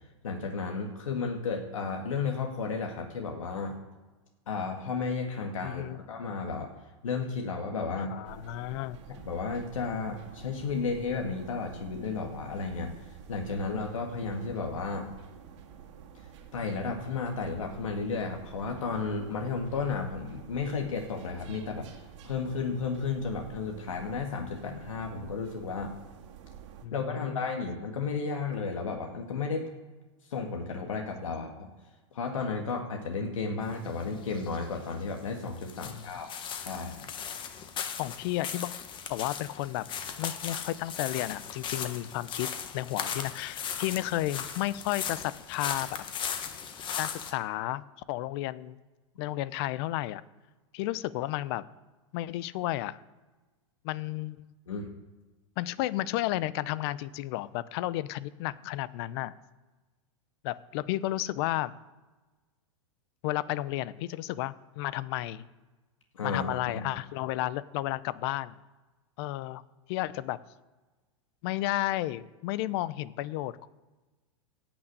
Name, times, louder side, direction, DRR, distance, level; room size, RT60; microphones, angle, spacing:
voice 1, 0.2-3.8 4.5-6.7 7.0-8.1 9.2-12.9 13.3-15.1 16.5-21.9 22.2-25.9 26.9-29.7 30.3-31.7 32.1-36.3 36.6-37.1 54.7-54.9 66.2-66.9, left 4 dB, 90° left, 2 dB, 1.8 m, -33 dB
voice 2, 5.6-6.0 8.0-9.0 13.5-13.6 26.8-27.4 35.8-36.0 38.0-38.7 39.1-39.9 40.2-42.5 42.7-45.9 47.0-48.8 49.2-50.2 50.7-51.6 52.1-53.0 53.8-54.5 55.6-59.3 60.4-61.7 63.2-65.5 66.2-68.5 69.2-69.6 69.9-70.4 71.4-73.7, left 16 dB, 55° left, 17 dB, 0.7 m, -32 dB
sound 1, 8.2-26.9, right 8 dB, 65° right, 2.1 m, -49 dB
sound 2, 33.6-47.3, left 7 dB, 30° left, 1.4 m, -38 dB
16.5 x 6.2 x 8.4 m, 1.2 s
hypercardioid pair, 120°, 16 cm